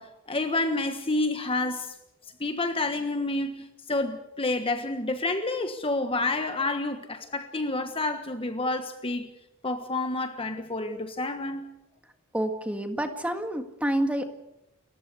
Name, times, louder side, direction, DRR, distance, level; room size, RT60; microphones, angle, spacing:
voice 1, 0.0-1.9 2.4-9.3 9.6-11.7, left 2 dB, 25° left, 1.4 m, -29 dB
voice 2, 12.3-14.2, right 1 dB, 5° right, 1.8 m, -28 dB
30.0 x 15.0 x 7.0 m
head